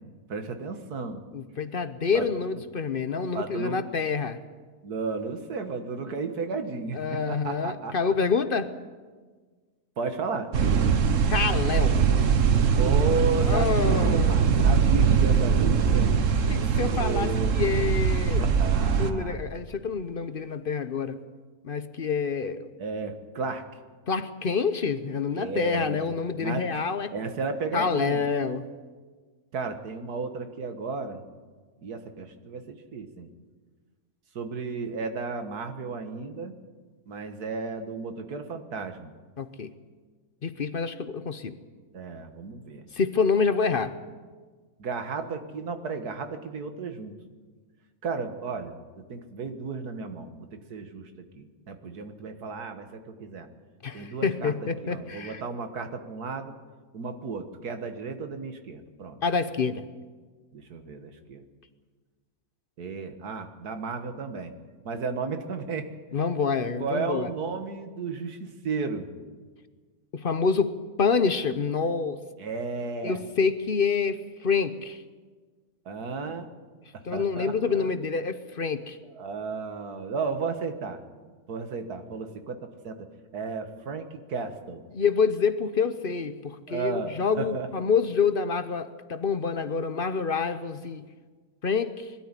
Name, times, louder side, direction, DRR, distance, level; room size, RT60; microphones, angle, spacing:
voice 1, 0.3-1.2 2.1-2.3 3.3-3.8 4.8-7.0 7.3-8.1 10.0-10.5 12.8-16.2 16.9-17.7 18.4-19.4 22.8-23.7 25.3-26.1 26.4-26.9 27.1-28.2 29.5-31.2 31.8-33.3 34.4-36.5 37.1-39.1 41.9-42.8 44.8-47.1 48.0-53.5 53.9-54.5 54.8-56.5 56.9-59.2 60.5-61.4 62.8-64.5 64.9-65.9 66.8-69.1 72.4-73.2 75.9-76.5 76.9-77.9 79.2-81.0 81.5-84.8 86.7-87.7, right 4 dB, 90° right, 7 dB, 2.0 m, -34 dB
voice 2, 1.3-4.4 6.9-8.7 11.3-12.0 13.5-14.4 16.5-18.4 19.0-21.2 21.6-22.7 24.1-27.1 27.7-28.7 39.4-39.7 40.4-41.6 42.9-43.9 53.8-55.4 59.2-59.9 66.1-67.3 70.1-72.2 73.0-75.0 77.0-79.0 84.9-91.1 91.6-92.1, left 5 dB, 45° left, 11 dB, 0.8 m, -27 dB
sound 1, 10.5-19.1, right 6 dB, 60° right, 1.4 m, -22 dB
21.0 x 13.0 x 9.8 m, 1.4 s
omnidirectional pair, 1.6 m